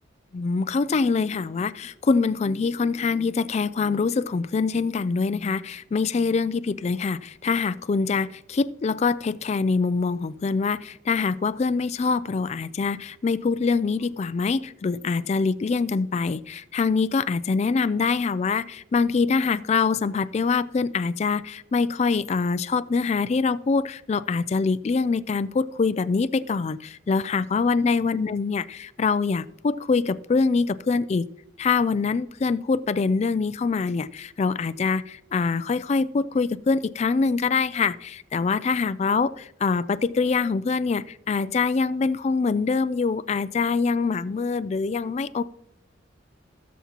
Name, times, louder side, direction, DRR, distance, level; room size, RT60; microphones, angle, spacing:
voice 1, 0.3-31.3 31.6-45.4, left 4 dB, 35° left, 16 dB, 0.3 m, -24 dB
17.0 x 7.3 x 2.9 m, 0.79 s
head